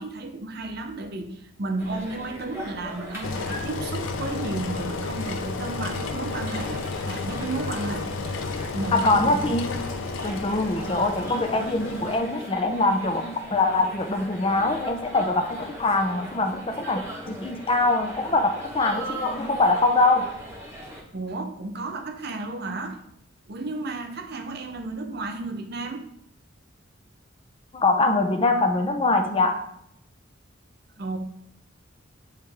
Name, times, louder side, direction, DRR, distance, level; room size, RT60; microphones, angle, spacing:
voice 1, 0.0-8.4 8.7-9.4 21.1-23.0 23.5-26.1 31.0-31.2, right 2 dB, 55° right, 6 dB, 0.7 m, -33 dB
sound 1, 1.8-21.0, equal, 15° right, 1.0 m, -40 dB
Engine, 3.2-12.2, left 4 dB, 75° left, 0.5 m, -32 dB
voice 2, 8.9-9.7 10.2-20.3 27.7-29.6, left 2 dB, 25° left, 5 dB, 0.6 m, -23 dB
8.9 x 3.2 x 3.4 m, 0.73 s
head